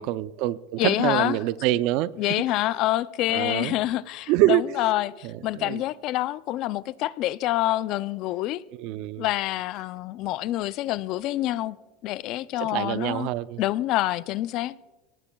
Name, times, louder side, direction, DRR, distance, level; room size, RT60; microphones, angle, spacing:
voice 1, 0.0-2.4 3.3-3.8 4.3-4.6 5.2-5.8 8.7-9.3 12.6-13.6, right 15 dB, 55° right, 0.4 m, -26 dB
voice 2, 0.8-1.4 2.2-8.6 9.2-11.8 12.0-13.3 13.6-14.8, left 15 dB, 45° left, 0.4 m, -27 dB
23.0 x 18.5 x 2.3 m
supercardioid pair, 145°, 0 cm